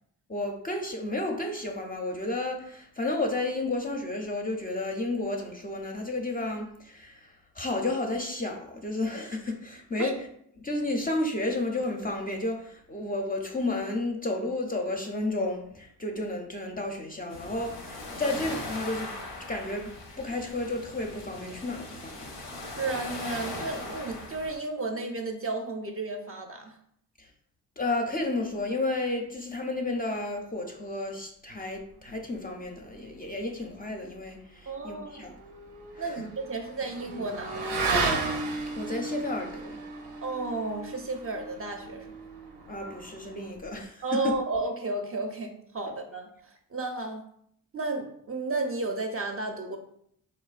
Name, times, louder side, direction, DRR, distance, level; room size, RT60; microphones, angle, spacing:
voice 1, 0.3-10.2 10.6-19.1 19.5-22.3 27.2-27.3 27.8-35.4 35.9-36.2 38.7-39.8 42.7-44.3, left 2 dB, 25° left, 2 dB, 0.4 m, -32 dB
sound 1, 17.3-24.6, left 2 dB, 90° left, 0.6 m, -39 dB
voice 2, 22.8-26.8 34.7-35.3 36.0-38.1 40.2-42.1 44.0-47.2 47.7-49.8, right 3 dB, 35° right, 4 dB, 0.4 m, -33 dB
Motorcycle / Accelerating revving vroom, 34.9-43.6, right 3 dB, 85° right, 0.5 m, -34 dB
3.2 x 2.1 x 2.4 m, 0.69 s
supercardioid pair, 45°, 40 cm